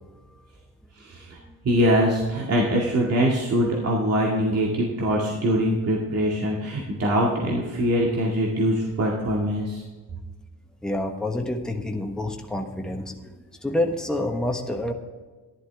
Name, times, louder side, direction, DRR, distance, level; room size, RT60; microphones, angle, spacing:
voice 1, 0.9-1.4 1.6-9.8, equal, 55° right, -3 dB, 2.1 m, -23 dB
voice 2, 10.8-14.9, left 1 dB, ahead, 2 dB, 1.2 m, -28 dB
11.5 x 11.0 x 3.4 m, 1.3 s
cardioid pair, 75°, 29 cm